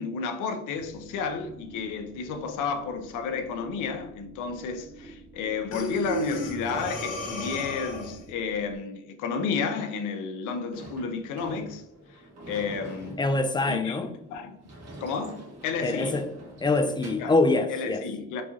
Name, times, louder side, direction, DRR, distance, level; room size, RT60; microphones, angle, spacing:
voice 1, 0.0-11.8 12.5-13.2 13.7-14.6 15.0-16.2 17.2-17.3 17.7-18.4, left 5 dB, 85° left, 0.5 m, -32 dB
sound 1, 0.7-8.8, right 2 dB, 25° right, 1.2 m, -49 dB
Breathing, 5.7-8.3, equal, 55° left, 1.5 m, -33 dB
Sliding door / Slam, 10.7-17.4, right 1 dB, 60° right, 1.3 m, -45 dB
voice 2, 13.2-14.1 15.8-16.3 16.6-18.0, left 2 dB, 15° left, 0.3 m, -24 dB
3.9 x 3.0 x 2.3 m
cardioid pair, 90°, 30 cm